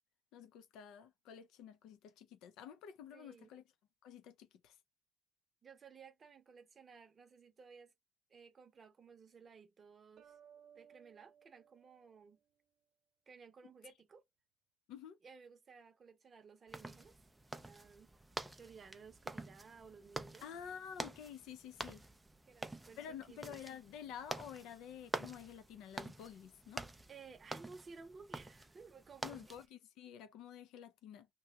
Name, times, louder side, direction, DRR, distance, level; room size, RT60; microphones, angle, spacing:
voice 1, 0.3-3.6 4.0-4.7 14.9-15.2 20.4-22.0 23.0-26.8 29.2-31.3, left 8 dB, 80° left, 0.5 m, -50 dB
voice 2, 3.1-3.5 5.6-7.9 8.3-10.4 10.7-12.4 13.3-14.2 15.2-17.2 17.5-18.1 18.6-20.4 22.5-23.6 27.1-29.6, right 5 dB, 30° right, 0.7 m, -57 dB
sound 1, 10.2-12.8, right 8 dB, 55° right, 0.9 m, -63 dB
sound 2, 16.7-29.6, right 2 dB, 5° right, 0.3 m, -48 dB
2.8 x 2.2 x 3.4 m
cardioid pair, 160°, 0 cm